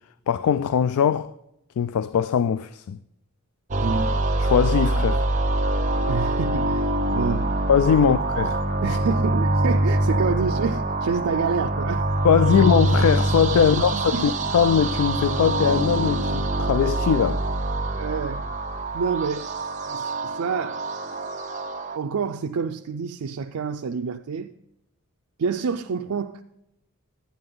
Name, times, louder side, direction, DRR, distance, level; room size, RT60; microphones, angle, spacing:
voice 1, 0.3-1.3 1.8-3.0 4.4-5.3 7.7-8.6 12.2-17.4, left 7 dB, 85° left, 0.3 m, -21 dB
sound 1, 3.7-22.0, right 2 dB, 35° right, 0.7 m, -24 dB
voice 2, 3.7-4.1 6.0-7.6 8.0-8.2 8.8-12.1 12.5-12.6 13.6-14.3 17.9-18.4 18.9-19.5 19.9-20.8 22.0-24.5 25.4-26.4, right 5 dB, 80° right, 0.4 m, -28 dB
11.5 x 9.4 x 3.8 m
head